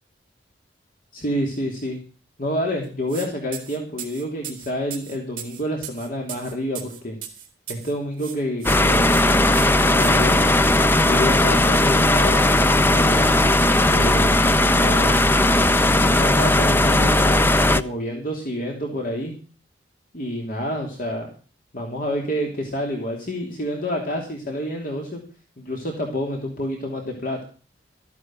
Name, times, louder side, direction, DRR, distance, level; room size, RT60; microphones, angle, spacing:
voice 1, 1.1-2.0 2.4-7.2 7.7-9.2 9.9-10.6 11.1-13.3 13.9-15.2 16.0-17.5 17.7-19.4 20.1-21.3 21.7-25.2 25.6-27.4, equal, 50° left, 1 dB, 3.1 m, -28 dB
sound 1, 3.1-3.3 3.5-7.9 8.2-8.8 9.1-9.2 9.5-10.1, right 10 dB, 50° right, 4.0 m, -36 dB
sound 2, 8.6-17.8, left 1 dB, 10° left, 0.6 m, -17 dB
14.5 x 9.6 x 6.2 m, 0.38 s
head